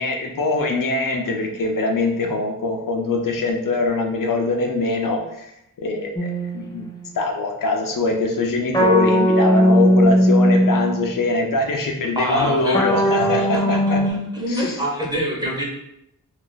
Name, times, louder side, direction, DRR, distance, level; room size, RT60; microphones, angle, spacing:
voice 1, 0.0-5.5 5.8-6.8 7.1-14.0 14.5-14.8, left 3 dB, 70° left, 2 dB, 0.5 m, -23 dB
sound 1, 6.2-7.1 8.7-11.1 12.7-14.1, equal, 15° left, 0.5 m, -18 dB
voice 2, 12.2-12.9 13.5-15.6, equal, 10° right, -3 dB, 0.8 m, -25 dB
2.4 x 2.4 x 3.8 m, 0.81 s
wide cardioid pair, 100°, 34 cm